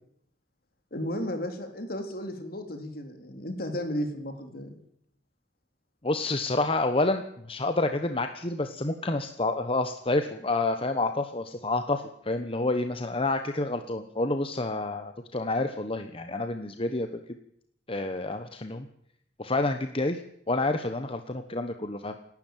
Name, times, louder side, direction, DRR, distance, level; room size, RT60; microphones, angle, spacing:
voice 1, 0.9-4.7, equal, 55° left, 6 dB, 3.7 m, -34 dB
voice 2, 6.0-17.4 17.9-18.9 19.4-20.2 20.5-22.2, left 2 dB, 30° left, 7 dB, 1.2 m, -29 dB
28.0 x 12.0 x 9.2 m, 0.72 s
head